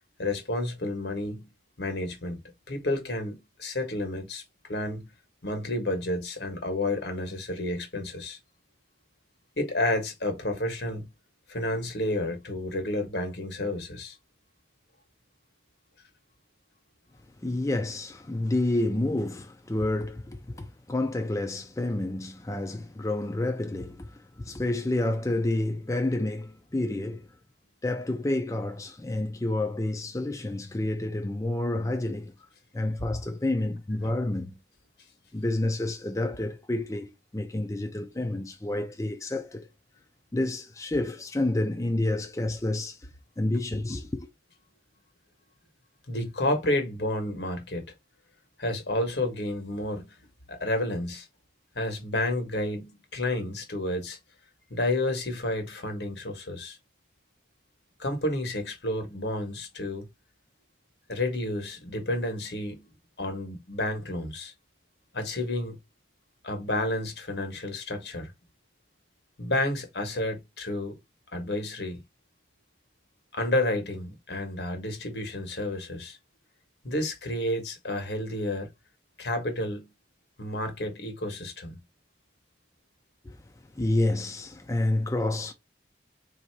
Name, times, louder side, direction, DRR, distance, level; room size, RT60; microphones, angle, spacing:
voice 1, 0.2-1.5 1.8-2.4 2.7-5.1 5.4-8.4 9.6-11.1 11.5-14.1 34.0-34.1 46.1-47.8 48.6-50.1 50.5-51.3 51.7-54.2 54.7-56.8 58.0-60.1 61.1-62.9 63.2-64.5 65.1-65.8 66.4-68.3 69.4-71.0 71.3-72.0 73.3-76.2 76.8-78.7 79.2-79.9 80.4-81.8, left 1 dB, 80° left, 1.3 m, -30 dB
voice 2, 17.4-27.3 27.8-32.3 32.7-34.6 35.3-39.7 40.3-43.1 43.4-44.3 83.2-85.5, left 1 dB, 20° left, 0.5 m, -29 dB
3.7 x 2.8 x 4.5 m
head